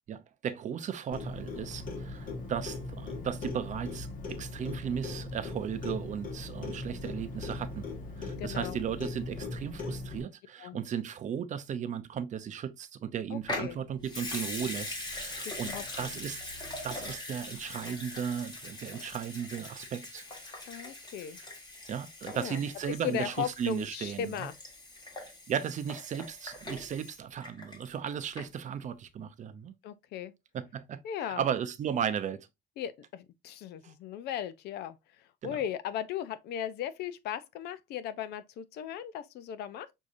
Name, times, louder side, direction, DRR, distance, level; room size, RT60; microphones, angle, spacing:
voice 1, 0.1-7.9 8.2-15.7 16.0-16.4 16.8-20.2 21.9-24.5 25.2-29.7 30.5-31.0 31.4-32.5 33.8-33.9 35.4-35.6, right 8 dB, 45° right, 0.6 m, -36 dB
Clock, 1.1-10.2, left 3 dB, 50° left, 1.7 m, -39 dB
voice 2, 8.2-8.8 10.6-10.8 13.3-13.8 15.4-16.2 20.7-21.4 22.3-22.6 22.9-24.5 29.8-30.3 31.0-31.4 32.8-35.0 35.4-39.9, left 9 dB, 75° left, 0.6 m, -37 dB
Water tap faucet / Sink (filling or washing) / Liquid, 13.4-28.1 28.4-28.5, left 2 dB, 25° left, 1.6 m, -42 dB
6.2 x 2.7 x 2.6 m
cardioid pair, 110°, 17 cm